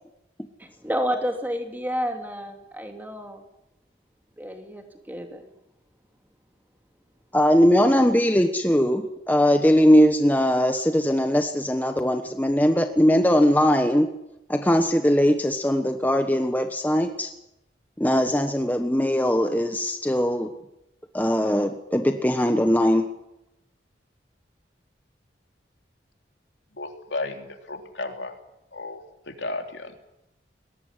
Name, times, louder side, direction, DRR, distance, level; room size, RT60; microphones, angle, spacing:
voice 1, 0.6-3.4 4.4-5.4, equal, 10° right, 2.9 m, -30 dB
voice 2, 7.3-14.1 14.5-17.3 18.0-20.5 21.1-23.0, equal, 10° left, 1.1 m, -20 dB
voice 3, 26.7-28.4 28.7-29.9, left 2 dB, 85° left, 3.3 m, -34 dB
21.5 x 18.5 x 9.8 m
head